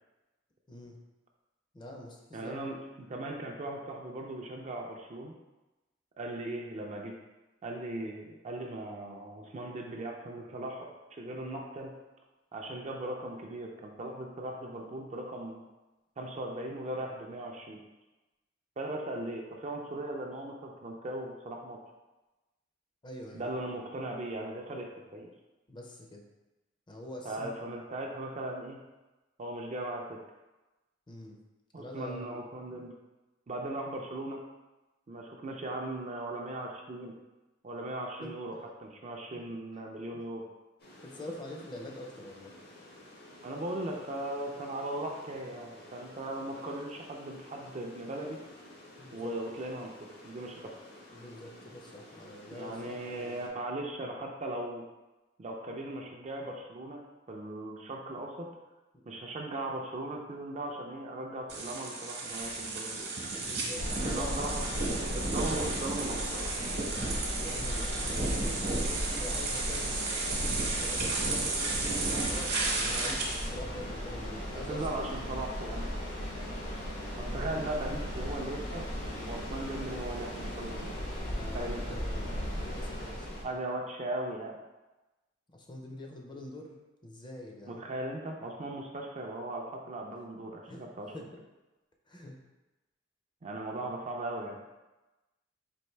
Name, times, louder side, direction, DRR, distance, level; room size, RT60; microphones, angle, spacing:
voice 1, 1.7-2.6 23.0-23.5 25.7-26.2 26.9-27.6 31.1-31.4 31.8-32.9 38.2-38.4 41.0-42.5 49.0-49.3 51.1-53.5 58.9-59.0 63.3-64.5 67.4-70.0 70.8-71.8 72.2-75.1 77.3-77.4 81.2-83.4 85.5-86.7 87.0-87.9 90.7-91.2 92.1-92.4, left 1 dB, 25° left, 1 dB, 0.5 m, -45 dB
voice 2, 2.3-5.3 6.2-7.2 7.6-11.9 12.5-15.6 16.2-17.8 18.8-21.8 23.3-25.3 27.2-28.8 29.4-30.2 31.7-32.9 33.5-34.4 35.1-37.1 37.6-40.4 43.4-48.4 49.1-50.8 52.5-54.8 55.4-57.0 57.3-58.5 59.1-63.1 64.0-66.5 74.7-75.8 77.2-78.9 79.2-80.9 81.5-81.8 83.4-84.6 87.7-91.1 93.4-94.6, right 1 dB, 35° right, 1 dB, 0.4 m, -38 dB
sound 1, 40.8-53.5, left 1 dB, 55° left, 0.7 m, -52 dB
sound 2, 61.5-73.5, right 3 dB, 60° right, 0.9 m, -33 dB
sound 3, 63.7-83.4, equal, 85° left, 1.1 m, -37 dB
4.4 x 2.5 x 3.2 m, 1.1 s
head